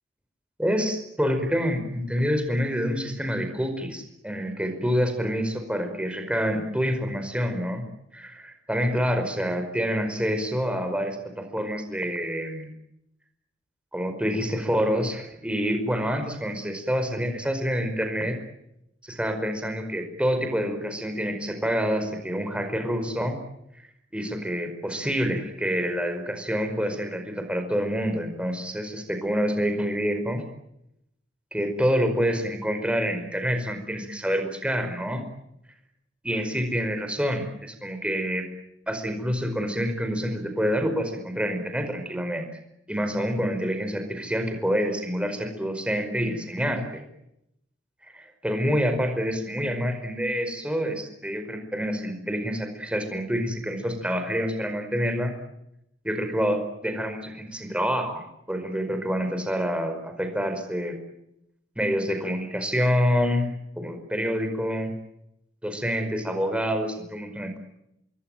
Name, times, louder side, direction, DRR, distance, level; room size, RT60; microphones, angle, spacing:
voice 1, 0.6-7.8 8.1-12.7 13.9-18.4 19.0-23.4 24.1-30.4 31.5-35.2 36.2-38.5 38.9-42.5 42.9-47.0 48.1-55.3 56.0-61.0 61.7-63.5 63.8-65.0 65.6-67.6, equal, 5° right, 6 dB, 5.0 m, -27 dB
27.0 x 22.0 x 9.2 m, 0.81 s
head